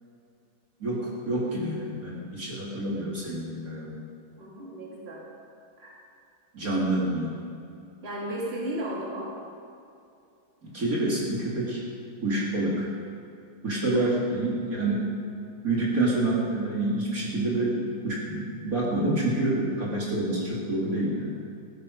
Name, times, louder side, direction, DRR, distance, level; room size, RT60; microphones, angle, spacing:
voice 1, 0.8-3.9 6.5-7.4 10.6-11.8 12.2-12.9 13.6-15.0 15.6-21.3, right 2 dB, 50° right, -5 dB, 3.0 m, -27 dB
voice 2, 4.4-5.3 5.8-6.0 8.0-9.4 13.9-14.0, right 1 dB, 35° right, -4 dB, 2.8 m, -34 dB
16.0 x 13.0 x 5.2 m, 2.6 s
omnidirectional pair, 1.9 m